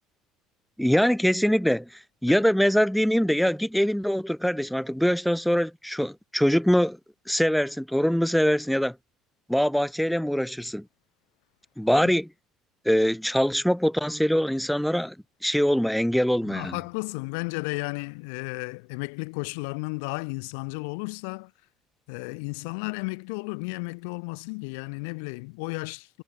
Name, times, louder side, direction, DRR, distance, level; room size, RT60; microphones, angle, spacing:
voice 1, 0.8-1.9 2.2-7.0 7.3-8.9 9.5-10.8 11.8-12.3 12.8-15.1 15.4-16.8, equal, ahead, 3.0 m, -23 dB
voice 2, 16.4-21.5 22.1-26.2, left 33 dB, 80° left, 2.8 m, -33 dB
supercardioid pair, 75°, 0 cm